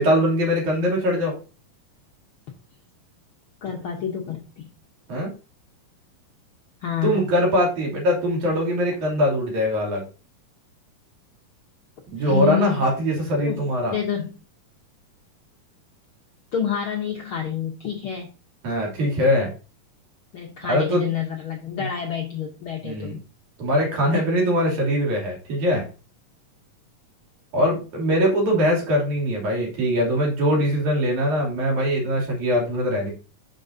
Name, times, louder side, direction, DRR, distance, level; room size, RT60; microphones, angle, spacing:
voice 1, 0.0-1.3 5.1-5.3 7.0-10.0 12.1-14.0 18.6-19.5 20.7-21.0 21.8-21.9 22.8-23.2 23.6-25.9 27.5-33.1, equal, 60° right, -1 dB, 4.1 m, -22 dB
voice 2, 3.6-4.7 6.8-7.3 12.2-12.9 13.4-14.3 16.5-18.3 20.3-23.2, left 8 dB, 80° left, 0 dB, 1.2 m, -28 dB
8.7 x 6.5 x 2.8 m, 0.34 s
omnidirectional pair, 4.0 m